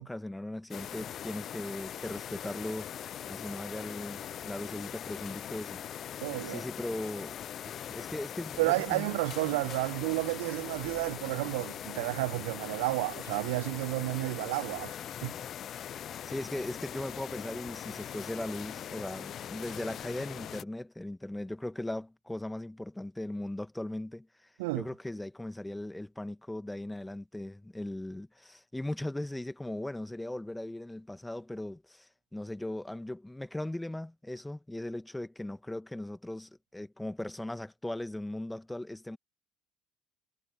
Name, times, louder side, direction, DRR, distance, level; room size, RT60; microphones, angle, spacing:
voice 1, 0.0-3.0 3.3-5.8 6.4-7.4 7.6-9.1 9.4-9.8 16.2-24.5 24.7-39.2, left 1 dB, 10° left, 2.0 m, -38 dB
sound 1, 0.7-20.6, left 10 dB, 45° left, 0.8 m, -41 dB
voice 2, 6.2-6.6 8.6-15.3 24.6-24.8, right 24 dB, 65° right, 0.4 m, -31 dB
figure-of-eight pair, 55°, 0 cm